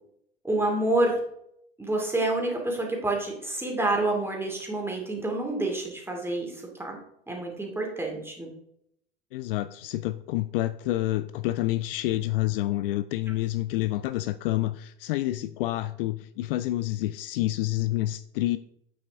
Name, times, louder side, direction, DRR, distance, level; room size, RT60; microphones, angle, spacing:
voice 1, 0.4-1.2 1.8-7.0 7.3-8.5, right 2 dB, 5° right, 0 dB, 2.4 m, -28 dB
voice 2, 9.3-18.6, left 16 dB, 60° left, 13 dB, 0.5 m, -28 dB
8.6 x 6.3 x 3.5 m, 0.74 s
figure-of-eight pair, 80°, 33 cm